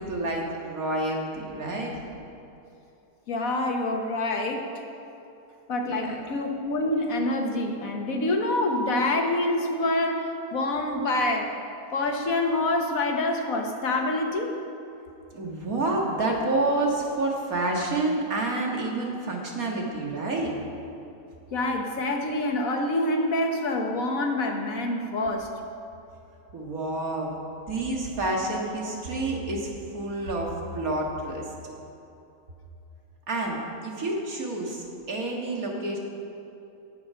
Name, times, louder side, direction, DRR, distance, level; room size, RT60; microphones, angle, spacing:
voice 1, 0.0-2.0 5.8-6.2 15.3-20.5 26.5-27.4 27.7-31.4 33.3-36.0, right 2 dB, 70° right, -1 dB, 2.3 m, -29 dB
voice 2, 3.3-4.7 5.7-11.5 11.9-14.6 21.5-25.5, left 2 dB, 65° left, 3 dB, 1.6 m, -26 dB
16.5 x 8.0 x 5.8 m, 2.8 s
omnidirectional pair, 1.5 m